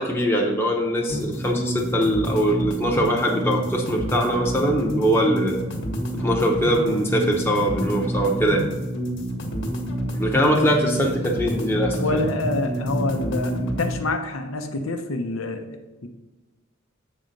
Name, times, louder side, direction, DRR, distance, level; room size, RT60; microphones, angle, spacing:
voice 1, 0.0-5.6 6.1-8.7 10.2-12.2, equal, 10° left, 0 dB, 0.8 m, -22 dB
sound 1, 1.1-14.0, equal, 60° left, 1.3 m, -28 dB
voice 2, 12.0-16.1, left 2 dB, 90° left, 6 dB, 0.8 m, -27 dB
7.7 x 4.2 x 5.2 m, 1.1 s
head